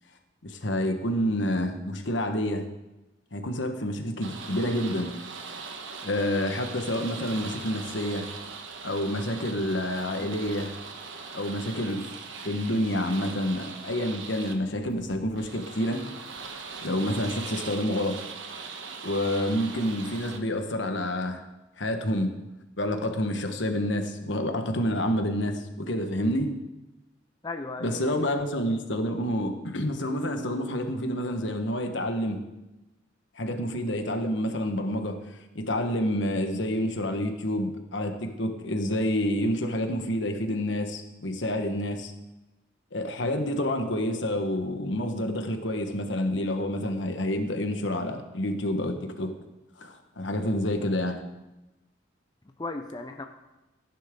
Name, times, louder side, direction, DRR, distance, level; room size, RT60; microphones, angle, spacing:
voice 1, 0.4-2.6 3.3-5.1 6.0-8.3 8.8-10.7 11.3-12.0 12.4-16.1 16.8-18.2 19.0-21.4 21.8-22.3 22.8-26.5 27.8-32.4 33.3-42.1 42.9-49.3 49.8-51.2, left 1 dB, 70° left, 6 dB, 1.3 m, -28 dB
sound 1, 4.2-20.4, right 5 dB, 75° right, 1.2 m, -40 dB
voice 2, 27.4-28.2 52.4-53.3, left 3 dB, 20° left, 4 dB, 0.6 m, -36 dB
15.5 x 10.0 x 3.8 m, 1.0 s
head